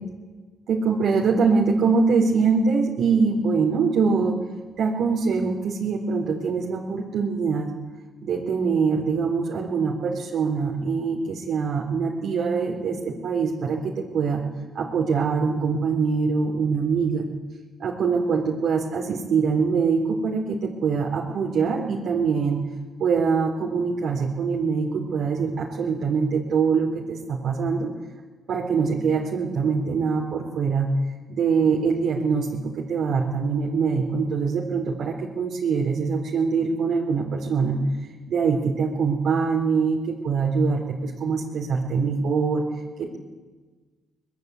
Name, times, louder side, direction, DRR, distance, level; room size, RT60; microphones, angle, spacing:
voice 1, 0.7-4.3 4.8-7.7 8.2-13.8 14.1-14.4 14.7-17.3 17.8-22.6 23.0-27.9 28.5-30.9 31.3-32.5 32.8-37.8 38.3-42.6, right 5 dB, 70° right, -2 dB, 3.7 m, -23 dB
23.0 x 20.5 x 8.3 m, 1.4 s
cardioid pair, 90°, 0 cm